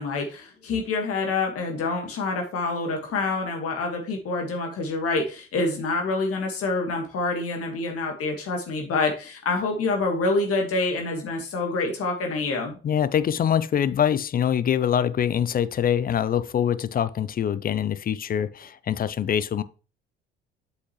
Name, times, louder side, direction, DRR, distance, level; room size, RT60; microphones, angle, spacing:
voice 1, 0.0-12.8, left 3 dB, 50° left, 1.7 m, -27 dB
voice 2, 12.8-19.6, left 9 dB, 30° left, 0.5 m, -24 dB
8.0 x 5.6 x 3.1 m
figure-of-eight pair, 55°, 31 cm